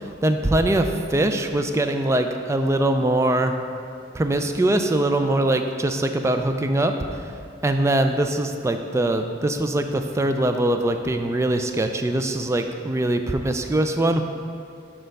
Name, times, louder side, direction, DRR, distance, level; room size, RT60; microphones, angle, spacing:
voice 1, 0.0-3.5 4.1-7.2 7.6-14.2, right 1 dB, 15° right, 6 dB, 0.3 m, -22 dB
6.5 x 4.5 x 5.3 m, 2.4 s
head